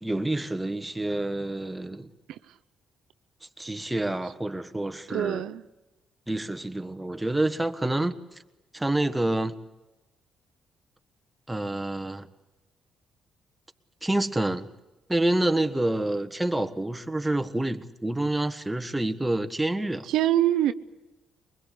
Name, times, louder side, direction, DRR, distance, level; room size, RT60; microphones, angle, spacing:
voice 1, 0.0-2.1 3.6-5.4 6.3-8.2 8.7-9.6 11.5-12.3 14.0-14.7 15.1-20.1, right 1 dB, 10° right, 1.5 m, -28 dB
voice 2, 5.1-5.6 20.1-20.7, right 12 dB, 85° right, 0.7 m, -24 dB
23.5 x 21.0 x 8.4 m
cardioid pair, 90°, 0 cm